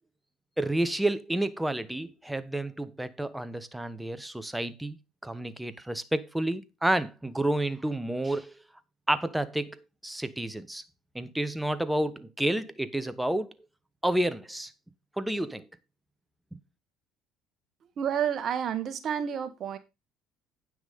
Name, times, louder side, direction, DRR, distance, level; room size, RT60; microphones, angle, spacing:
voice 1, 0.6-5.0 5.2-8.6 9.1-10.8 11.1-13.5 14.0-14.7 15.2-15.7 16.5-16.6, right 1 dB, 5° right, 1.1 m, -30 dB
voice 2, 18.0-19.8, right 8 dB, 50° right, 1.6 m, -30 dB
9.5 x 6.2 x 5.2 m
supercardioid pair, 85°, 0 cm